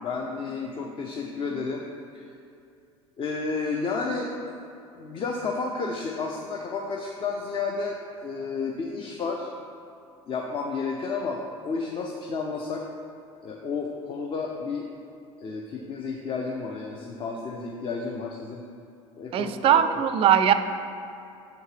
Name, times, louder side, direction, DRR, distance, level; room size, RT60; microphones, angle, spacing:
voice 1, 0.0-1.8 2.1-2.2 3.2-4.6 5.0-9.5 10.3-12.8 13.4-14.9 15.4-18.6 19.2-20.0, left 4 dB, 30° left, 0 dB, 0.5 m, -31 dB
voice 2, 19.3-20.5, right 9 dB, 35° right, 10 dB, 0.3 m, -20 dB
6.7 x 4.5 x 3.2 m, 2.6 s
figure-of-eight pair, 70°, 17 cm